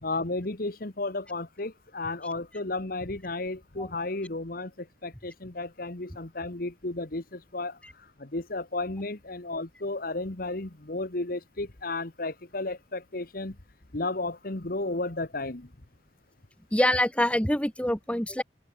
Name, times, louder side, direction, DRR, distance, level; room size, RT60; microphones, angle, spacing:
voice 1, 0.0-13.6 13.9-15.7, left 2 dB, 50° left, 1.5 m, -33 dB
voice 2, 16.7-18.4, left 1 dB, 5° left, 1.6 m, -25 dB
open air
head